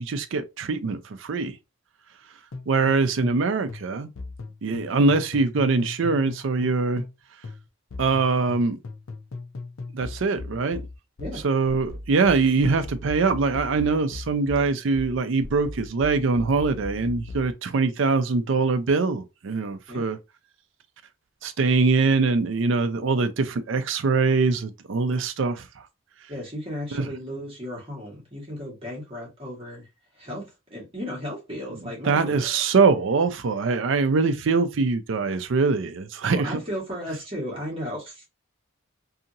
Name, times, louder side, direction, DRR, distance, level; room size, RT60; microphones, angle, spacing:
voice 1, 0.0-1.5 2.7-4.1 4.6-7.0 8.0-8.8 9.9-10.8 11.4-20.2 21.4-25.7 26.9-27.1 32.0-36.6, right 4 dB, 65° right, 0.4 m, -23 dB
sound 1, 2.5-3.4 3.7-7.2 7.4-17.5, left 2 dB, 80° left, 0.6 m, -38 dB
voice 2, 26.3-29.9 30.2-32.6 36.3-38.2, equal, 25° right, 1.3 m, -35 dB
2.8 x 2.7 x 2.5 m
head